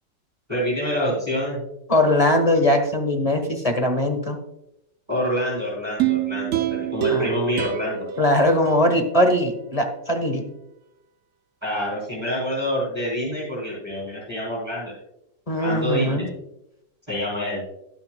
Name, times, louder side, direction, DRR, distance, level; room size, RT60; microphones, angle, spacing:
voice 1, 0.5-1.6 5.1-8.1 11.6-14.9 15.6-16.3 17.1-17.6, equal, 15° right, -6 dB, 3.7 m, -27 dB
voice 2, 1.9-4.4 7.1-7.3 8.2-10.5 15.5-16.3, left 1 dB, 25° left, 5 dB, 1.0 m, -20 dB
sound 1, 6.0-9.3 9.7-9.8, right 11 dB, 60° right, 0.8 m, -26 dB
11.5 x 11.5 x 2.3 m, 0.85 s
omnidirectional pair, 1.9 m